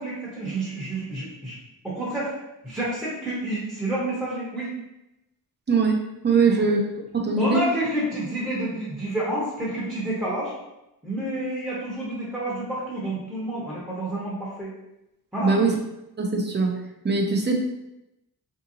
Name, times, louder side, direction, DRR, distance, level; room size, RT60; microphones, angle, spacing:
voice 1, 0.0-1.6 1.8-2.3 2.6-4.8 6.4-6.6 7.4-10.5 11.0-14.7 15.3-15.6, right 1 dB, 5° right, -8 dB, 0.8 m, -29 dB
voice 2, 5.7-6.8 7.1-7.6 15.4-15.8 16.2-16.8 17.0-17.5, right 4 dB, 30° right, 1 dB, 0.5 m, -21 dB
3.9 x 2.8 x 2.6 m, 0.90 s
wide cardioid pair, 165°, 38 cm